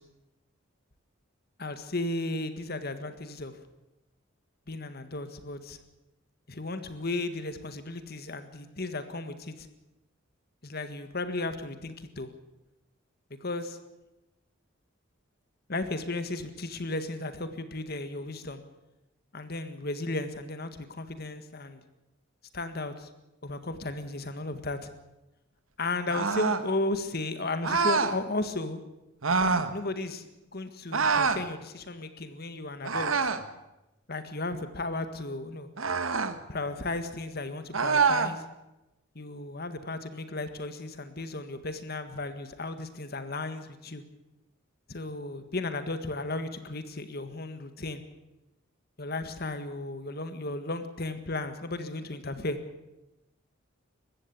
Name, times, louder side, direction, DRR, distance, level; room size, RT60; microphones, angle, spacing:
voice 1, 1.6-3.5 4.7-5.8 6.5-9.7 10.6-12.3 13.4-13.8 15.7-18.6 19.3-21.8 22.5-23.1 23.4-24.9 25.8-28.8 29.7-33.2 34.1-35.7 36.5-38.4 39.1-44.0 44.9-48.0 49.0-52.6, left 2 dB, 50° left, 9 dB, 1.7 m, -34 dB
sound 1, 26.1-26.7 27.6-28.2 29.2-29.7 30.9-31.4 32.8-33.5 35.8-36.4 37.7-38.3, right 5 dB, 85° right, 1.5 m, -26 dB
21.5 x 15.5 x 8.5 m, 0.96 s
head